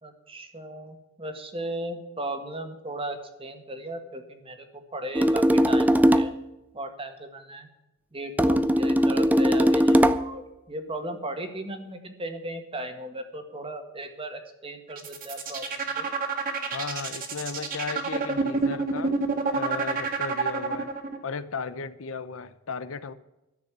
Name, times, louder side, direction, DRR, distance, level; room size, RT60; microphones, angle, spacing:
voice 1, 0.0-6.3 6.7-7.7 8.1-16.1, right 1 dB, 30° right, 6 dB, 1.7 m, -36 dB
sound 1, 5.1-6.4 8.4-10.3, equal, 10° right, 0.5 m, -20 dB
sound 2, 14.9-21.2, right 4 dB, 45° right, 1.9 m, -28 dB
voice 2, 16.7-19.1 19.5-20.9 21.2-23.1, left 5 dB, 75° left, 13 dB, 0.8 m, -35 dB
13.5 x 6.8 x 9.5 m, 0.96 s
head